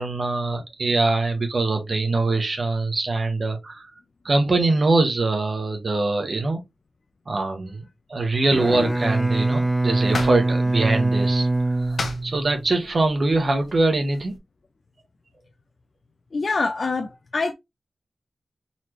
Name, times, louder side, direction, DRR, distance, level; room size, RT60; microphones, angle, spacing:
voice 1, 0.0-3.9 4.2-6.6 7.3-14.4, right 2 dB, 45° right, 1.0 m, -23 dB
Bowed string instrument, 8.4-12.8, right 2 dB, ahead, 0.4 m, -23 dB
sound 1, 9.0-14.4, left 3 dB, 65° left, 0.8 m, -37 dB
voice 2, 16.3-17.5, left 3 dB, 50° left, 0.5 m, -25 dB
4.1 x 3.1 x 2.9 m
wide cardioid pair, 125°, 0 cm